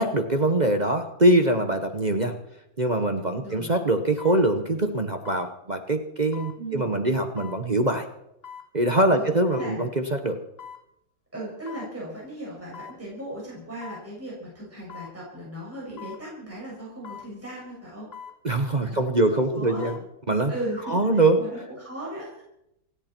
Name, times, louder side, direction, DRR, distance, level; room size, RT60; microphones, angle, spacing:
voice 1, 0.0-2.3 2.8-8.0 8.7-10.4 18.4-20.0 20.3-20.5 20.9-21.4, right 1 dB, 35° right, 5 dB, 0.7 m, -23 dB
sound 1, 3.0-3.2 4.2-4.4 5.2-5.5 6.3-6.6 7.4-7.6 8.4-8.7 9.5-9.8 10.6-10.8 11.7-11.9 12.7-13.0 13.8-14.1 14.9-15.1 16.0-16.2 17.0-17.3 18.1-18.4 19.6-20.0 20.5-20.6, left 7 dB, 30° left, 1.8 m, -42 dB
voice 2, 3.4-3.8 6.6-6.9 9.1-9.8 11.3-18.1 18.8-19.2 19.5-19.9 20.5-22.4, right 1 dB, 5° right, -5 dB, 6.1 m, -37 dB
27.5 x 10.5 x 4.5 m, 0.81 s
omnidirectional pair, 2.2 m